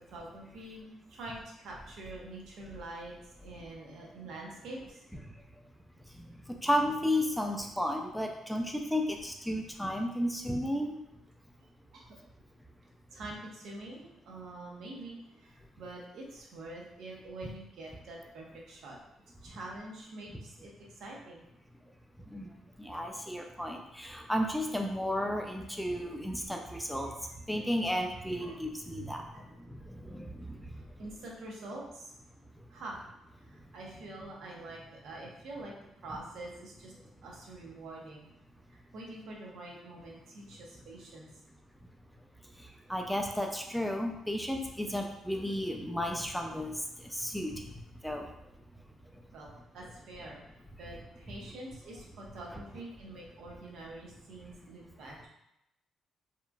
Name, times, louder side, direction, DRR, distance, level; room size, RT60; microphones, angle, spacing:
voice 1, 0.1-3.1 3.4-5.0 11.9-12.2 13.1-19.0 19.4-21.4 28.4-28.6 29.3-29.4 31.0-32.1 32.7-33.0 33.4-35.7 36.0-36.9 37.2-38.3 38.7-41.2 49.3-50.4 50.8-55.3, right 2 dB, 75° right, -2 dB, 0.7 m, -45 dB
voice 2, 6.6-10.9 22.3-22.5 22.8-27.1 27.5-29.2 29.9-30.5 42.9-46.7 47.1-47.6 48.0-48.2, equal, ahead, 2 dB, 0.3 m, -33 dB
2.9 x 2.4 x 2.2 m, 0.87 s
cardioid pair, 90°, 0 cm